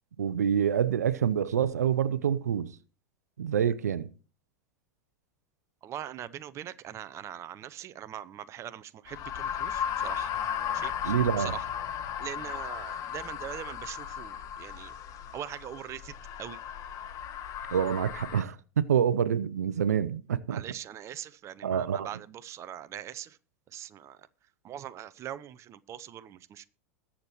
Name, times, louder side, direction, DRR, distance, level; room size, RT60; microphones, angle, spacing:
voice 1, 0.2-2.7 3.4-4.1 11.0-11.5 17.7-20.6 21.6-22.1, right 8 dB, 80° right, 0.6 m, -27 dB
voice 2, 5.8-10.3 10.7-11.6 12.2-14.9 15.3-16.6 20.5-23.4 23.7-24.3 24.6-26.6, right 11 dB, 35° right, 0.7 m, -42 dB
sound 1, 9.1-18.4, left 9 dB, 40° left, 1.3 m, -35 dB
21.0 x 7.3 x 3.0 m
hypercardioid pair, 90°, 9 cm